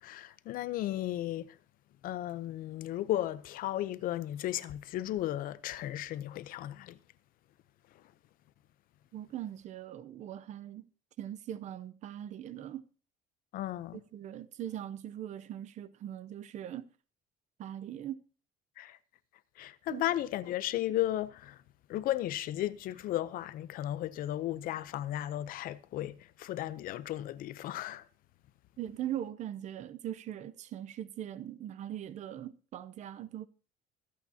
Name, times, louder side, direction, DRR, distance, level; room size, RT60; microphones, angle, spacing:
voice 1, 0.0-1.5 2.0-7.0 13.5-14.0 18.8-19.0 19.6-21.6 21.9-28.0, left 13 dB, 50° left, 0.6 m, -35 dB
voice 2, 9.1-10.9 11.2-12.8 14.1-16.8 17.6-18.2 19.9-20.0 28.8-33.5, right 11 dB, 40° right, 0.6 m, -40 dB
24.0 x 8.6 x 2.7 m
cardioid pair, 175°, 19 cm